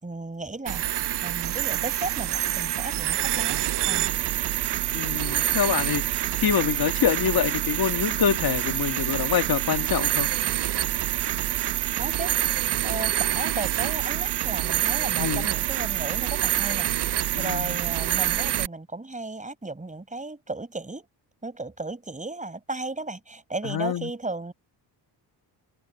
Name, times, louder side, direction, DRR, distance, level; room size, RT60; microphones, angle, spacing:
voice 1, 0.0-4.1 12.0-12.4 12.8-21.1 21.4-24.5, right 2 dB, 15° right, 5.0 m, -35 dB
sound 1, 0.7-18.7, right 13 dB, 65° right, 0.7 m, -26 dB
voice 2, 4.9-10.3 15.2-15.5 17.3-17.8 23.7-24.1, left 8 dB, 50° left, 1.7 m, -26 dB
open air
cardioid pair, 110°, 45 cm